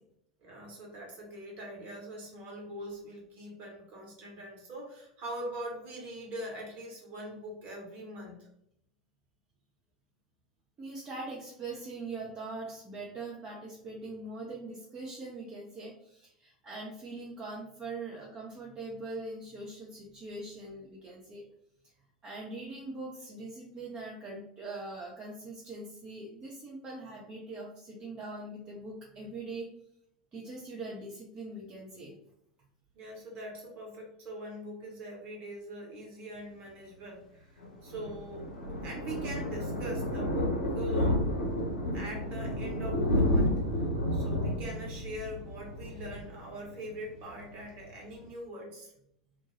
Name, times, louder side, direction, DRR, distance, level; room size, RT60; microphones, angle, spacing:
voice 1, 0.4-8.5 32.9-38.5 38.8-41.2 41.9-43.6 44.1-48.9, right 1 dB, 40° right, -1 dB, 1.1 m, -42 dB
voice 2, 10.8-21.4 22.2-29.7 30.3-32.2, right 2 dB, 25° right, -3 dB, 0.6 m, -42 dB
Thunder, 37.6-47.0 47.3-47.5 47.9-48.0 48.1-48.2, left 1 dB, 70° left, 0.7 m, -31 dB
2.5 x 2.2 x 3.1 m, 0.75 s
figure-of-eight pair, 80°, 4 cm